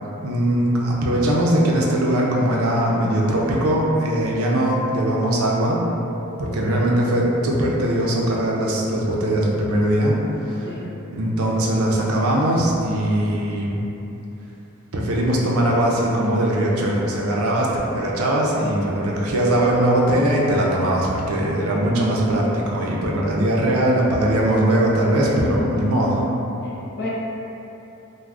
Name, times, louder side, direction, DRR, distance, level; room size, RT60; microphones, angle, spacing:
voice 1, 0.2-5.8 6.4-10.7 11.1-13.8 14.9-26.1, right 1 dB, 80° right, -3 dB, 0.5 m, -20 dB
voice 2, 6.5-6.8 10.6-10.9 17.9-18.1 26.6-27.1, left 2 dB, 55° left, -6 dB, 0.6 m, -34 dB
3.3 x 2.1 x 2.4 m, 3.0 s
head